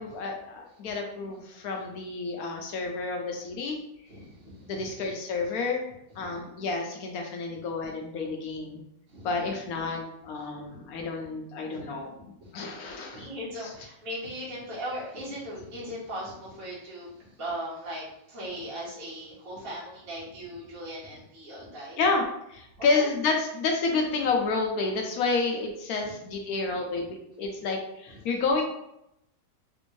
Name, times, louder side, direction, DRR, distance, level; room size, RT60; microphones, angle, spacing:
voice 1, 0.0-3.8 4.7-5.8 6.2-8.8 9.2-12.1 12.5-13.3 22.0-22.2 22.5-28.6, left 4 dB, 70° left, 2 dB, 0.9 m, -29 dB
voice 2, 4.1-4.9 6.2-6.4 7.5-7.6 9.1-9.7 10.6-10.8 11.7-11.8 12.4-22.0 22.8-23.1 26.0-26.1 28.1-28.2, equal, 40° right, -7 dB, 1.0 m, -39 dB
3.4 x 2.6 x 3.0 m, 0.81 s
omnidirectional pair, 1.9 m